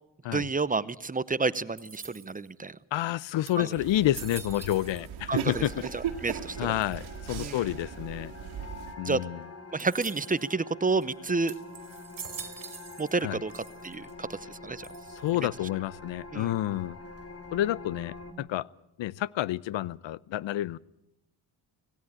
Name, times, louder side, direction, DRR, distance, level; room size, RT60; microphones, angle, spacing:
voice 1, 0.3-2.8 3.6-3.7 5.3-5.6 5.9-6.8 7.4-7.6 9.0-9.2 9.7-11.5 13.0-14.9 15.4-15.5 16.3-16.5, right 3 dB, 15° right, 17 dB, 0.7 m, -30 dB
sound 1, 1.8-2.5 3.1-3.2 3.5-5.2 5.5-6.1 6.8-7.3 9.8-10.5 11.0-11.1 11.5-13.2 13.5-14.1 14.8-15.4, right 6 dB, 45° right, 2.6 m, -45 dB
voice 2, 2.9-5.7 6.6-8.3 9.0-9.4 13.2-13.4 15.2-17.0 17.5-18.7 19.0-20.8, left 14 dB, 65° left, 23 dB, 0.7 m, -29 dB
sound 2, 3.8-8.9, right 9 dB, 75° right, 1.9 m, -38 dB
sound 3, 5.3-18.3, left 3 dB, 30° left, 2.7 m, -46 dB
18.0 x 17.0 x 8.7 m, 0.83 s
cardioid pair, 75°, 48 cm